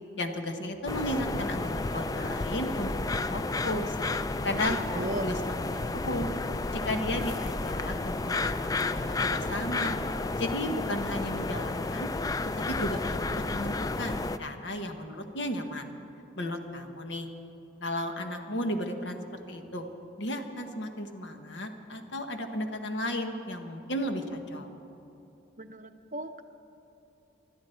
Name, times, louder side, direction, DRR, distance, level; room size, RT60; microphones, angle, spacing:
voice 1, 0.2-4.0 4.4-5.5 5.9-6.3 6.7-8.5 8.8-10.0 10.3-12.1 12.7-13.2 13.5-15.9 16.4-17.3 17.8-19.8 20.2-24.7, left 1 dB, 70° left, 6 dB, 1.2 m, -34 dB
sound 1, 0.9-14.4, left 3 dB, 20° left, 0.3 m, -31 dB
voice 2, 4.7-5.3 25.6-26.4, right 1 dB, 40° right, 8 dB, 0.6 m, -36 dB
21.0 x 12.5 x 4.5 m, 3.0 s
head